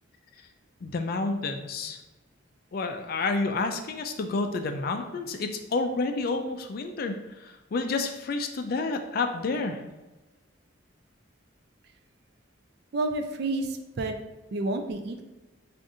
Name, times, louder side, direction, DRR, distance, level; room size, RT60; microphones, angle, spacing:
voice 1, 0.8-2.0 2.7-9.8, left 3 dB, 45° left, 6 dB, 0.3 m, -29 dB
voice 2, 12.9-14.1 14.5-15.2, right 2 dB, 50° right, 5 dB, 0.4 m, -30 dB
4.8 x 2.5 x 2.7 m, 1.1 s
head